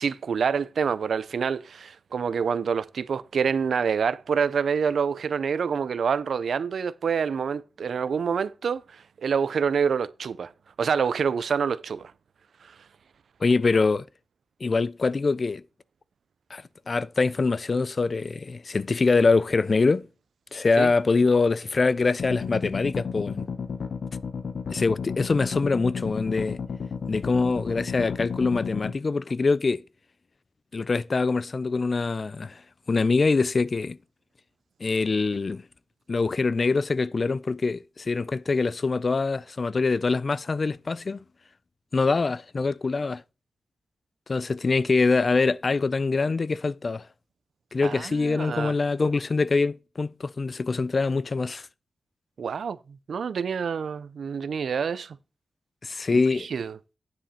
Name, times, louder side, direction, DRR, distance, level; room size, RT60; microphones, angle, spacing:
voice 1, 0.0-10.5 10.8-12.1 20.8-20.9 47.8-48.7 52.4-52.8 53.1-55.2 56.1-56.2 56.5-56.7, right 6 dB, 80° right, 0.4 m, -27 dB
voice 2, 13.4-14.1 14.6-15.6 16.5-20.1 20.5-23.5 24.7-26.6 27.1-29.8 30.7-32.6 32.9-34.0 34.8-35.6 36.1-41.2 41.9-43.2 44.3-47.1 47.7-51.7 55.8-56.5, left 4 dB, 40° left, 0.3 m, -24 dB
sound 1, 22.2-28.9, left 6 dB, 75° left, 0.9 m, -32 dB
9.6 x 5.7 x 4.2 m
wide cardioid pair, 155°, 0 cm